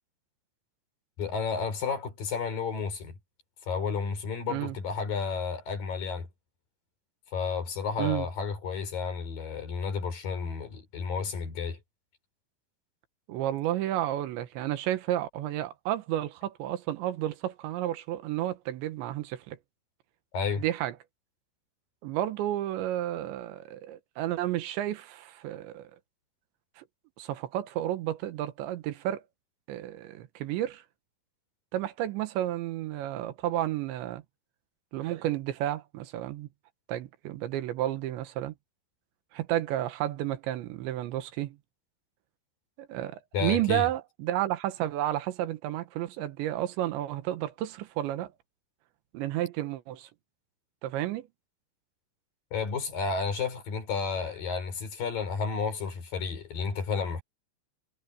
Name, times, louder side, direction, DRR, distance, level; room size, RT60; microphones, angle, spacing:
voice 1, 1.2-3.1 3.7-6.3 7.3-11.8 20.3-20.6 43.3-43.9 52.5-57.2, left 5 dB, 50° left, 5.5 m, -31 dB
voice 2, 13.3-19.6 20.6-21.0 22.0-25.9 26.8-26.9 27.2-29.2 29.7-30.8 31.7-34.2 34.9-36.5 36.9-38.6 39.3-41.6 42.8-48.3 49.1-50.1 50.8-51.3, right 13 dB, 90° right, 3.6 m, -31 dB
omnidirectional pair, 5.1 m